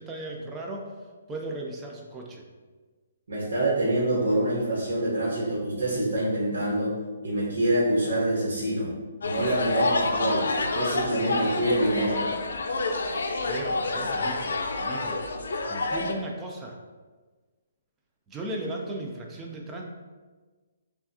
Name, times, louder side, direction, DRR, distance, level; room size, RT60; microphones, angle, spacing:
voice 1, 0.0-2.5 13.4-15.2 15.7-16.8 18.3-19.8, right 1 dB, 10° right, 0 dB, 0.4 m, -36 dB
voice 2, 3.3-6.9 7.2-8.9 9.2-12.2, right 1 dB, 85° right, -5 dB, 1.2 m, -26 dB
sound 1, 9.2-16.1, left 3 dB, 75° left, 0.5 m, -28 dB
5.6 x 2.4 x 2.7 m, 1.4 s
hypercardioid pair, 170°, 0 cm